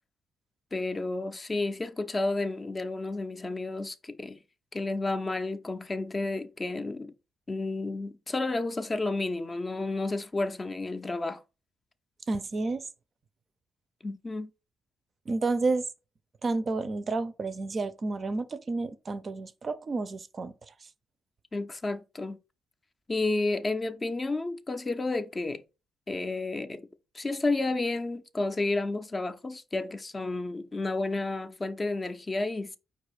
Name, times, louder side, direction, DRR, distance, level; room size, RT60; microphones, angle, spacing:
voice 1, 0.7-4.4 4.7-7.1 7.5-11.4 14.0-14.5 21.5-22.4 23.1-25.6 26.1-26.9 27.1-32.8, left 2 dB, 25° left, 0.4 m, -31 dB
voice 2, 12.3-12.9 15.3-15.8 16.4-20.7, right 3 dB, 40° right, 0.4 m, -30 dB
4.5 x 2.4 x 4.8 m
cardioid pair, 90°, 0 cm